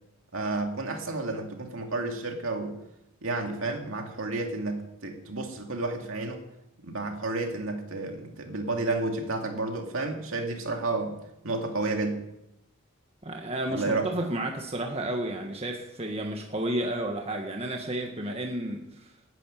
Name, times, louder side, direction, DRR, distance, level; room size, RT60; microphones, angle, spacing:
voice 1, 0.3-2.8 3.2-6.4 6.8-11.2 11.4-12.2 13.7-14.1, right 2 dB, 65° right, 3 dB, 2.6 m, -31 dB
voice 2, 13.2-19.1, right 1 dB, 25° right, 2 dB, 1.5 m, -32 dB
13.0 x 11.0 x 9.3 m, 0.86 s
head